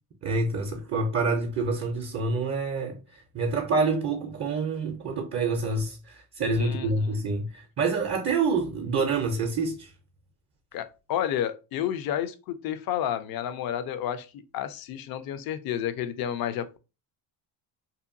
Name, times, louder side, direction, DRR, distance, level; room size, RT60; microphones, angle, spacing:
voice 1, 0.2-9.9, right 3 dB, 35° right, 0.5 m, -27 dB
voice 2, 6.6-7.2 10.7-16.8, left 10 dB, 50° left, 0.5 m, -31 dB
2.8 x 2.2 x 2.5 m
cardioid pair, 90°, 48 cm